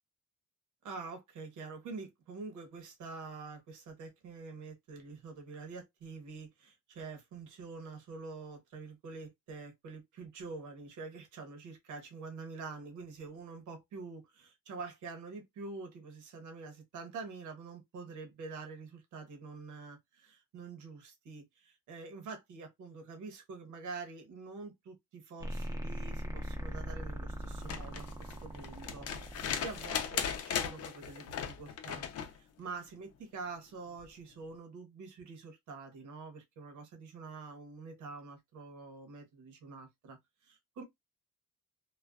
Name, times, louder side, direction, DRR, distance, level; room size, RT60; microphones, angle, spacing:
voice 1, 0.8-32.0 32.3-40.2 40.4-40.8, right 4 dB, 80° right, 0.9 m, -46 dB
sound 1, 25.4-30.4, equal, 10° right, 0.6 m, -40 dB
sound 2, 27.5-32.4 34.0-34.1, left 8 dB, 55° left, 0.5 m, -37 dB
2.4 x 2.2 x 2.3 m
cardioid pair, 90°, 30 cm